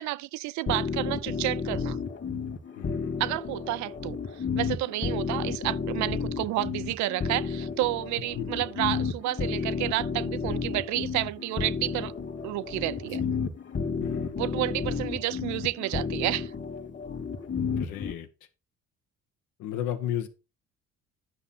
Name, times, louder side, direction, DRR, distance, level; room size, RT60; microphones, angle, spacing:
voice 1, 0.0-2.0 3.2-12.1 12.4-13.2 14.4-16.5, right 17 dB, 70° right, 0.5 m, -30 dB
sound 1, 0.7-18.1, left 5 dB, 40° left, 2.0 m, -32 dB
voice 2, 2.8-3.2 8.4-8.5 13.1-13.3 14.0-14.4 17.8-18.3 19.6-20.3, left 11 dB, 80° left, 1.4 m, -34 dB
9.7 x 5.7 x 4.3 m
supercardioid pair, 70°, 30 cm